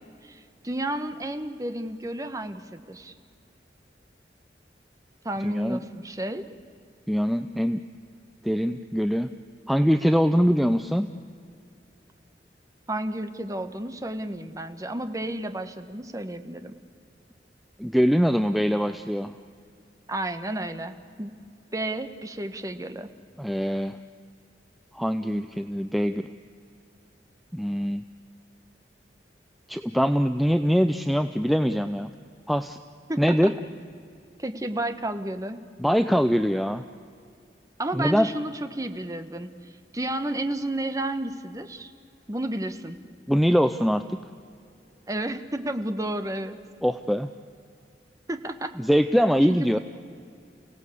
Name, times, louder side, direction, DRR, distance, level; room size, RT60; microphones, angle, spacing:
voice 1, 0.2-3.1 5.2-6.4 12.9-16.8 20.1-21.4 21.7-23.1 33.1-33.5 34.4-35.6 37.8-41.9 42.3-43.0 45.1-46.6 48.3-48.7 49.5-49.8, right 1 dB, 20° right, 9 dB, 1.1 m, -32 dB
voice 2, 5.4-5.8 7.1-7.8 8.4-9.3 9.7-11.1 17.8-19.3 23.4-24.0 24.9-26.3 27.5-28.0 29.7-32.1 32.5-32.8 33.2-33.5 35.8-36.8 37.9-38.3 43.3-44.2 46.8-47.3 48.8-49.8, equal, ahead, 8 dB, 0.5 m, -23 dB
29.0 x 17.0 x 8.4 m, 2.4 s
head